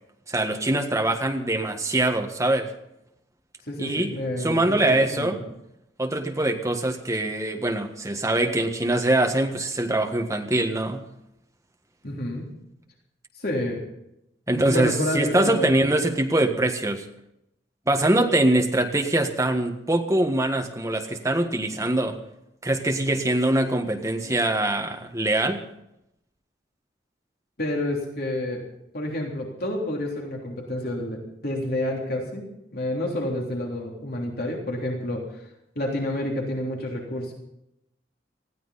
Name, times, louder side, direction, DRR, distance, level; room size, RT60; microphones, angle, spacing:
voice 1, 0.3-2.7 3.8-4.1 4.4-5.4 6.0-11.0 14.5-17.0 17.9-22.2 22.6-25.6, right 1 dB, 15° right, 4 dB, 1.6 m, -23 dB
voice 2, 3.7-5.4 12.0-12.5 13.3-13.8 14.5-15.8 27.6-28.6 28.9-32.4 32.7-35.2 35.7-37.3, left 1 dB, 55° left, -1 dB, 3.4 m, -29 dB
19.5 x 15.0 x 4.2 m, 0.81 s
head